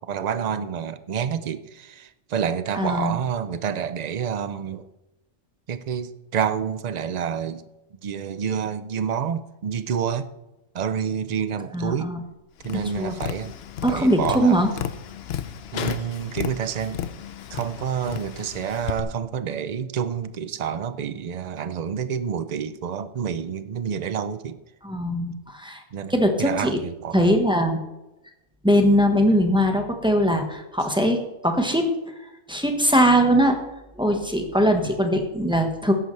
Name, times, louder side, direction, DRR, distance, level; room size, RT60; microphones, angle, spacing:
voice 1, 0.1-4.9 5.7-7.6 8.0-10.3 10.7-12.1 12.6-13.5 13.9-14.6 15.7-17.0 17.5-24.6 25.9-27.4, right 7 dB, 55° right, 12 dB, 0.4 m, -28 dB
voice 2, 2.7-3.2 11.7-12.2 13.0-13.1 13.8-14.7 24.8-25.8 26.1-26.8 27.1-27.8 28.6-31.9 32.5-33.6 34.0-35.9, equal, 5° right, 3 dB, 1.2 m, -21 dB
Tap, 12.6-19.0, left 9 dB, 60° left, 0.8 m, -34 dB
13.5 x 10.5 x 3.3 m, 0.98 s
omnidirectional pair, 1.4 m